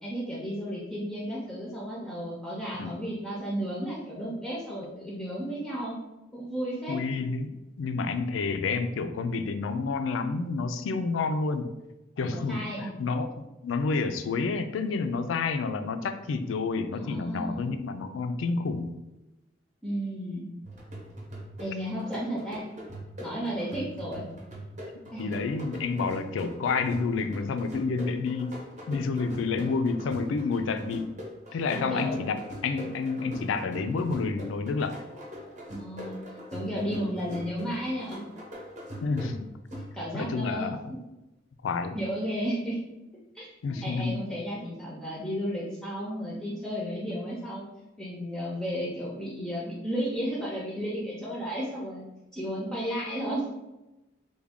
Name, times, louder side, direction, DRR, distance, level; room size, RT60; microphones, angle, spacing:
voice 1, 0.0-6.0 6.3-7.0 12.3-12.9 16.9-17.6 19.8-20.5 21.6-22.6 23.2-24.2 25.1-25.3 31.7-32.2 35.7-36.2 36.5-38.2 39.9-41.0 41.9-42.8 43.3-43.5 43.8-47.6 48.0-52.0 52.3-53.4, equal, 5° left, -6 dB, 0.5 m, -33 dB
voice 2, 6.9-11.8 12.2-18.9 25.2-31.1 31.5-32.4 32.6-35.0 39.0-39.5 40.1-41.0 41.6-42.0 43.6-44.2, left 4 dB, 90° left, 8 dB, 0.4 m, -29 dB
sound 1, 20.6-40.3, equal, 40° right, 0.8 m, -42 dB
3.5 x 2.2 x 3.5 m, 0.99 s
head